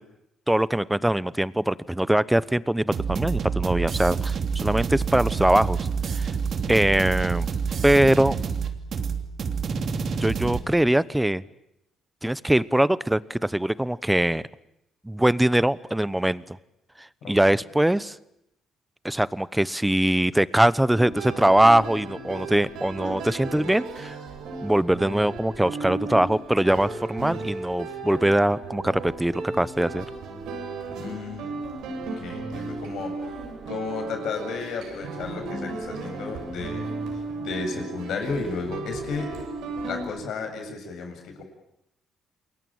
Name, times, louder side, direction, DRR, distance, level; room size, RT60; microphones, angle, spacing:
voice 1, 0.5-5.8 6.1-6.3 6.7-7.5 7.8-8.4 10.2-11.4 12.2-14.4 15.0-16.6 17.0-18.2 19.0-24.2 24.6-30.1, right 1 dB, 5° right, 18 dB, 1.0 m, -22 dB
sound 1, 2.9-10.6, right 5 dB, 55° right, 2.9 m, -27 dB
voice 2, 17.2-17.6 31.0-31.6 32.2-33.4 33.7-39.4 39.8-41.4, left 4 dB, 75° left, 4 dB, 7.6 m, -33 dB
sound 2, 20.9-40.0, right 3 dB, 85° right, 7.1 m, -35 dB
28.0 x 21.5 x 8.9 m, 0.81 s
cardioid pair, 90°, 0 cm